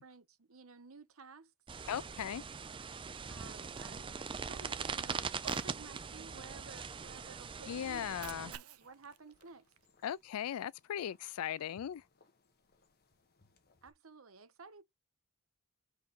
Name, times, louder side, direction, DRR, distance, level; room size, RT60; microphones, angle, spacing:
voice 1, 0.0-2.1 3.3-5.3 5.6-9.7 13.8-14.8, right 4 dB, 70° right, 1.0 m, -54 dB
sound 1, 1.7-8.6, right 5 dB, 25° right, 0.4 m, -41 dB
voice 2, 1.9-2.4 7.7-8.5 10.0-12.0, left 9 dB, 80° left, 0.3 m, -38 dB
Cat, 5.3-5.8 8.0-10.3, right 9 dB, 85° right, 0.6 m, -52 dB
sound 2, 8.8-13.9, left 3 dB, 45° left, 1.3 m, -69 dB
5.7 x 4.7 x 3.7 m
head